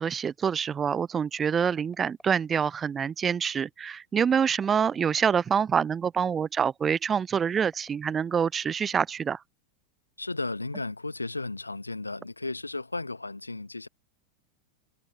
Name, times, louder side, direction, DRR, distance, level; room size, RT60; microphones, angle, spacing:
voice 1, 0.0-9.4, right 7 dB, 20° right, 0.7 m, -26 dB
sound 1, 1.4-2.8 4.3-5.5 7.1-8.6, equal, ahead, 6.4 m, -57 dB
voice 2, 10.2-13.9, left 2 dB, 80° left, 1.5 m, -34 dB
figure-of-eight pair, 90°, 0 cm